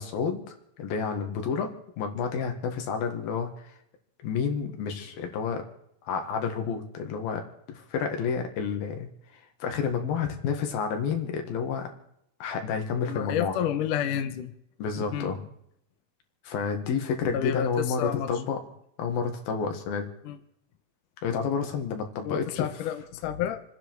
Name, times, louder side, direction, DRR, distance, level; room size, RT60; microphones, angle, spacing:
voice 1, 0.0-1.7 2.0-3.7 4.2-5.6 6.1-7.4 7.7-9.1 9.6-11.9 12.4-13.6 14.8-15.4 16.4-18.6 19.0-20.1 21.2-22.7, left 6 dB, 90° left, 4 dB, 3.7 m, -30 dB
voice 2, 13.0-14.5 15.1-15.3 17.3-18.3 20.3-20.4 22.3-23.6, left 9 dB, 75° left, 8 dB, 2.4 m, -30 dB
28.0 x 10.0 x 4.7 m, 0.73 s
omnidirectional pair, 4.1 m